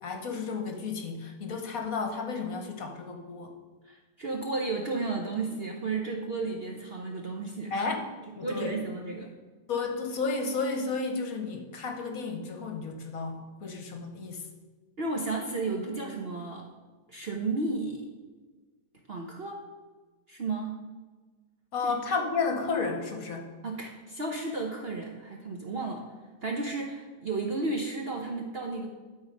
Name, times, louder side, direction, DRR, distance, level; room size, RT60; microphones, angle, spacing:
voice 1, 0.0-3.5 7.7-8.0 8.4-8.7 9.7-14.4 21.7-23.5, left 4 dB, 60° left, 3 dB, 1.4 m, -32 dB
voice 2, 3.9-7.9 8.4-9.3 15.0-16.6 17.1-18.1 19.1-19.6 20.3-20.8 21.8-21.9 23.6-26.1 26.4-28.9, right 3 dB, 50° right, 1 dB, 0.8 m, -33 dB
12.0 x 4.1 x 5.2 m, 1.3 s
omnidirectional pair, 1.8 m